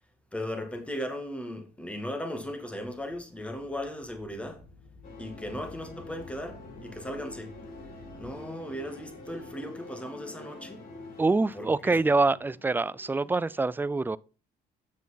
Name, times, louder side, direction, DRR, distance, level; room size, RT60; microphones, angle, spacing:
voice 1, 0.3-4.6 5.2-7.5 8.2-10.9 11.5-11.9, equal, 5° left, 2.4 m, -37 dB
sound 1, 2.8-8.3, left 2 dB, 85° left, 3.6 m, -53 dB
sound 2, 5.0-13.6, left 2 dB, 60° left, 5.1 m, -47 dB
voice 2, 11.2-14.2, right 3 dB, 10° right, 0.4 m, -25 dB
8.5 x 6.9 x 4.0 m
cardioid pair, 110°, 17 cm